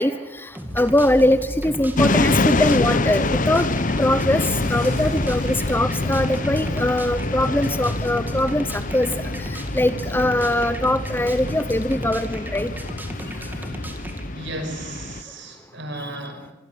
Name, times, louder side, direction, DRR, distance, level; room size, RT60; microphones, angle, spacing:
voice 1, 0.0-3.7 4.0-4.4 4.7-12.7 15.9-16.1, left 1 dB, 10° left, 13 dB, 0.8 m, -22 dB
sound 1, 0.5-14.3, equal, 10° right, 2.9 m, -33 dB
sound 2, 2.0-15.2, left 3 dB, 45° left, 0.9 m, -26 dB
sound 3, 4.6-6.4, equal, 45° right, 7.6 m, -33 dB
voice 2, 14.3-16.5, right 1 dB, 65° right, 6 dB, 6.1 m, -34 dB
25.5 x 23.0 x 8.6 m, 1.1 s
head